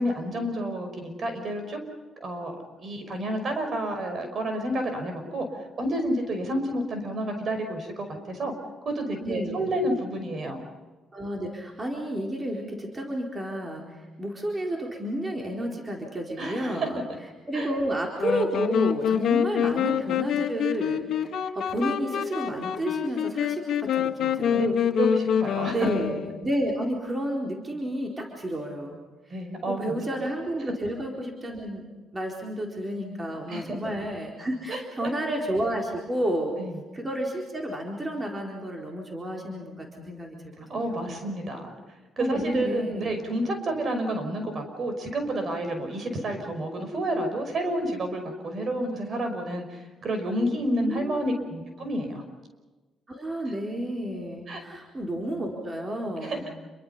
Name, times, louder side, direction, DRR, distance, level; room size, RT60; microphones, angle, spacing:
voice 1, 0.0-1.8 2.2-2.5 2.8-5.5 5.8-8.5 8.8-10.6 16.4-16.9 17.5-17.7 24.2-25.9 29.3-30.0 33.0-33.8 34.7-35.1 36.6-36.7 40.7-41.7 42.2-52.2 54.5-54.6 56.2-56.4, right 1 dB, 50° right, 6 dB, 5.6 m, -30 dB
voice 2, 9.2-9.7 11.1-17.0 17.5-24.7 25.7-29.0 29.3-29.4 29.7-31.9 32.1-36.5 36.9-40.4 40.7-41.3 42.2-43.1 50.8-51.2 53.1-56.4, right 1 dB, 25° right, 0 dB, 4.3 m, -31 dB
sound 1, 18.2-26.6, left 9 dB, 70° left, 1.8 m, -26 dB
28.5 x 23.5 x 5.7 m, 1.2 s
cardioid pair, 90°, 0 cm